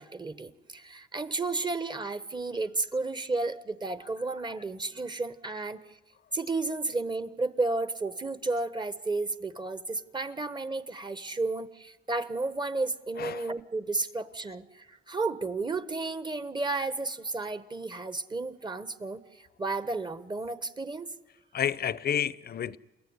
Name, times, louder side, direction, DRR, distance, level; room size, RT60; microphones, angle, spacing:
voice 1, 0.0-6.0 6.3-21.1, right 3 dB, 20° right, 1.3 m, -32 dB
voice 2, 13.2-13.5 21.5-22.8, left 9 dB, 50° left, 0.8 m, -30 dB
28.5 x 14.5 x 9.6 m
cardioid pair, 90°, 20 cm